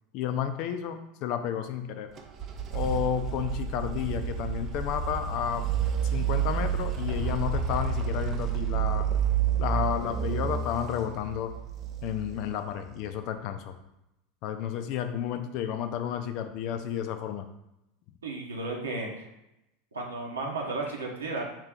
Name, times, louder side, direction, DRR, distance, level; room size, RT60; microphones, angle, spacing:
voice 1, 0.1-2.1 2.7-5.6 6.1-9.1 9.6-11.5 12.0-13.7 14.4-17.5, left 9 dB, 55° left, 9 dB, 0.4 m, -31 dB
sound 1, 2.2-13.0, right 7 dB, 40° right, 0.6 m, -30 dB
voice 2, 18.2-19.3 19.9-21.5, right 2 dB, 85° right, -1 dB, 1.0 m, -33 dB
4.7 x 3.0 x 3.7 m, 0.88 s
figure-of-eight pair, 80°, 0 cm